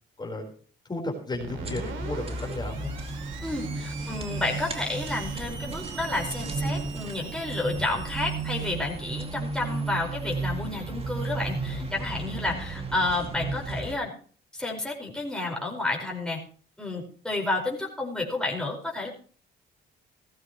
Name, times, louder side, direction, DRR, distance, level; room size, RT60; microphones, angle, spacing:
voice 1, 0.9-2.9, left 2 dB, 20° left, -1 dB, 4.4 m, -33 dB
Screech, 1.3-11.8, right 6 dB, 75° right, 2.4 m, -44 dB
sound 1, 1.5-13.9, right 3 dB, 30° right, 2.3 m, -34 dB
voice 2, 3.4-14.1 14.5-16.4 16.8-19.1, left 2 dB, 5° left, -2 dB, 5.0 m, -31 dB
17.0 x 14.0 x 3.1 m, 0.42 s
cardioid pair, 90°, 20 cm